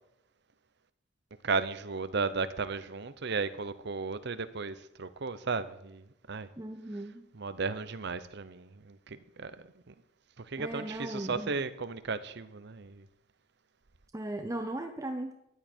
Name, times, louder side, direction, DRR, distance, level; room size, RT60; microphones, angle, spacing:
voice 1, 1.4-6.5 7.3-9.6 9.9-10.0 10.4-13.1, right 4 dB, 60° right, 0.8 m, -35 dB
voice 2, 6.6-7.3 10.6-11.5 14.1-15.3, right 1 dB, 15° right, 0.7 m, -37 dB
14.0 x 11.0 x 4.5 m
head